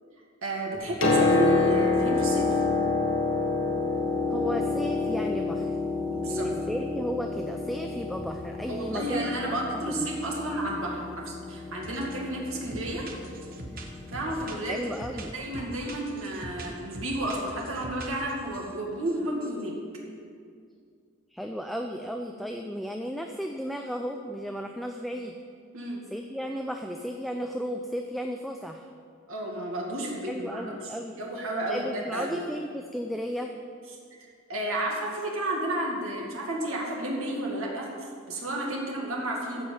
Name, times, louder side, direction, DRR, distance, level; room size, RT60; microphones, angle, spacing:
voice 1, 0.4-2.6 6.1-6.5 8.7-13.0 14.1-14.8 15.3-19.7 25.7-26.0 29.3-30.6 31.2-32.4 34.1-39.6, right 1 dB, 80° right, -2 dB, 2.2 m, -32 dB
Piano, 0.7-14.5 15.6-15.7, left 3 dB, 65° left, 1.6 m, -28 dB
voice 2, 4.3-5.7 6.3-9.3 9.7-10.1 14.7-15.3 21.3-25.4 26.1-28.9 30.3-31.2 31.7-33.5, equal, ahead, 3 dB, 0.4 m, -34 dB
sound 1, 11.8-12.2 12.5-18.7 19.1-19.2 19.4-19.6, right 2 dB, 45° right, 1.1 m, -43 dB
14.5 x 5.4 x 7.1 m, 2.2 s
head